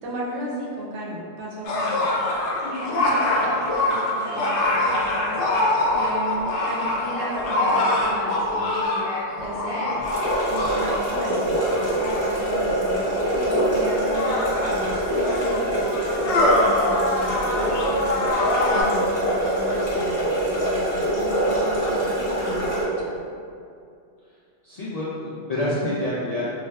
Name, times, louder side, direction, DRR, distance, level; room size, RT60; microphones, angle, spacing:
voice 1, 0.0-1.9 2.6-5.6 5.9-9.0 9.4-9.9 10.4-15.8 16.2-23.2, right 1 dB, 80° right, -4 dB, 1.0 m, -35 dB
sound 1, 1.6-12.5 13.3-13.4 14.0-18.8, left 2 dB, 80° left, 0.9 m, -24 dB
sound 2, 10.0-22.8, right 1 dB, 20° left, 0.9 m, -24 dB
voice 2, 24.6-26.4, left 1 dB, 65° left, -9 dB, 0.4 m, -27 dB
4.1 x 2.3 x 2.2 m, 2.4 s
omnidirectional pair, 1.2 m